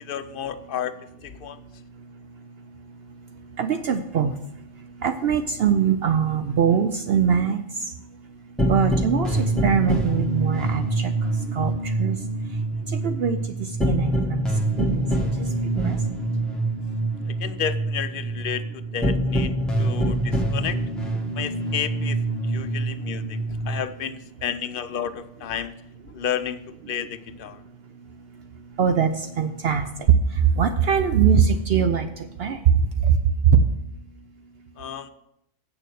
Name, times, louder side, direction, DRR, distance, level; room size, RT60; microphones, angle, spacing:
voice 1, 0.0-1.6 17.3-20.8 21.4-25.8 26.1-26.6 26.9-27.6 34.8-35.1, left 8 dB, 55° left, 11 dB, 0.7 m, -32 dB
voice 2, 3.6-4.3 5.0-7.6 8.7-11.1 11.5-12.2 13.0-14.5 14.8-15.3 15.8-16.0 28.8-29.9 30.6-32.1 32.4-32.6 33.1-33.2 33.5-33.6, right 7 dB, 65° right, 8 dB, 0.7 m, -22 dB
sound 1, 8.6-23.8, right 1 dB, ahead, 1.3 m, -25 dB
7.7 x 6.7 x 6.3 m, 0.80 s
omnidirectional pair, 1.2 m